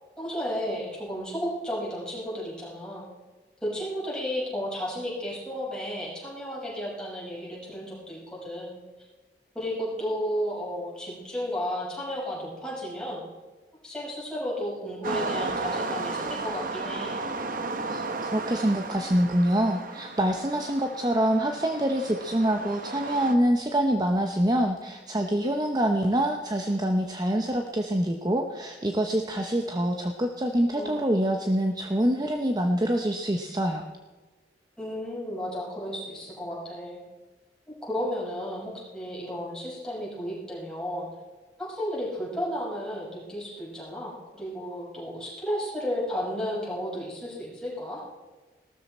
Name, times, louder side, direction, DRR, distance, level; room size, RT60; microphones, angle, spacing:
voice 1, 0.2-3.1 3.6-8.8 9.5-13.2 13.8-17.2 30.7-31.0 34.8-37.0 37.7-41.1 41.6-48.0, equal, 5° left, -6 dB, 5.7 m, -33 dB
sound 1, 15.0-23.3, right 3 dB, 50° right, 1.1 m, -34 dB
voice 2, 17.9-33.8, right 1 dB, 20° right, 4 dB, 0.8 m, -25 dB
17.5 x 13.0 x 4.3 m, 1.2 s
head